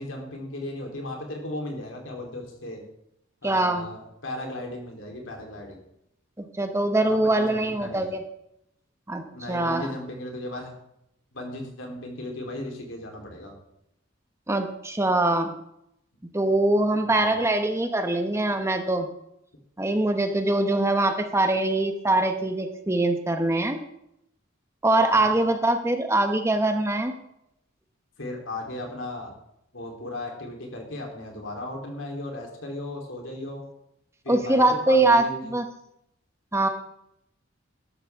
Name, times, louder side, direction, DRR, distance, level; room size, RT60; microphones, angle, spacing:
voice 1, 0.0-2.8 3.4-5.8 7.0-8.1 9.3-10.7 11.3-13.5 17.1-17.4 25.1-25.3 28.2-29.3 29.7-33.6 34.2-35.5, left 1 dB, 70° left, 1 dB, 3.5 m, -36 dB
voice 2, 3.4-3.9 6.6-8.2 9.1-9.2 9.5-9.9 14.5-15.5 16.3-19.1 19.8-23.8 24.8-27.1 34.3-35.6 36.5-36.7, right 2 dB, 15° right, 6 dB, 0.9 m, -23 dB
13.0 x 12.5 x 3.6 m, 0.79 s
head